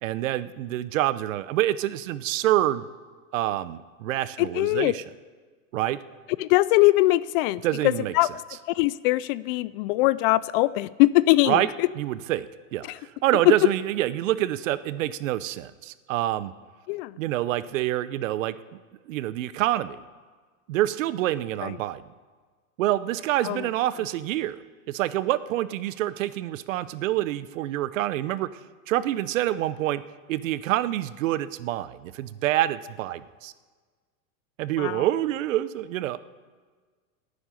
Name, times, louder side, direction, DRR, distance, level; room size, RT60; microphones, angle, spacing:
voice 1, 0.0-2.9 3.3-5.0 5.7-6.0 7.6-8.1 11.5-11.7 12.0-12.5 12.7-16.5 17.2-18.6 19.1-20.0 20.7-22.0 22.8-28.5 28.9-30.0 30.3-33.5 34.6-36.2, right 14 dB, 75° right, 16 dB, 0.8 m, -26 dB
voice 2, 4.4-4.9 6.4-8.3 8.7-11.9 12.8-13.0 13.5-13.6 16.9-17.2 21.6-21.8 23.4-23.7 34.8-35.0, left 19 dB, 45° left, 19 dB, 0.4 m, -22 dB
11.5 x 9.7 x 9.7 m, 1.5 s
supercardioid pair, 130°, 40 cm